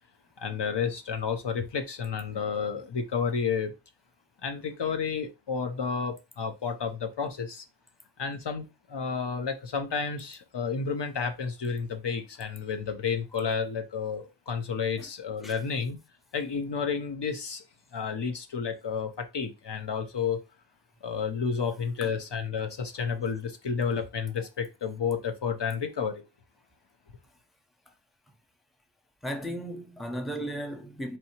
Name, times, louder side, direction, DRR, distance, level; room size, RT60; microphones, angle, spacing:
voice 1, 0.4-3.7 4.4-7.6 8.2-16.0 16.3-17.6 17.9-20.4 21.0-26.2, left 6 dB, 60° left, 0.7 m, -31 dB
voice 2, 29.2-31.2, equal, ahead, 0.6 m, -36 dB
4.4 x 2.7 x 2.9 m
wide cardioid pair, 65°, 47 cm